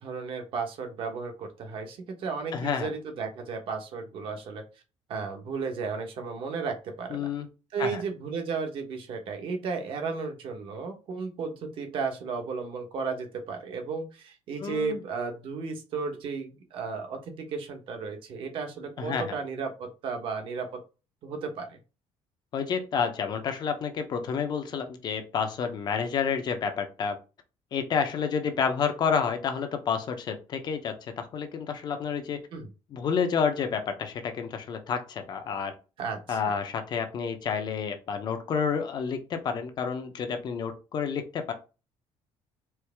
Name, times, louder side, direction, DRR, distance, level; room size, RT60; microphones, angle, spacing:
voice 1, 0.0-4.6 5.1-7.3 7.7-20.8 21.2-21.8 32.5-32.7 36.0-36.6, right 5 dB, 50° right, 4 dB, 1.1 m, -34 dB
voice 2, 2.5-2.9 7.1-7.5 7.8-8.0 14.6-15.0 19.0-19.4 22.5-27.2 27.7-32.4 32.9-35.7 36.3-41.5, left 6 dB, 40° left, 7 dB, 0.7 m, -29 dB
4.6 x 2.7 x 3.4 m, 0.32 s
cardioid pair, 160°, 11 cm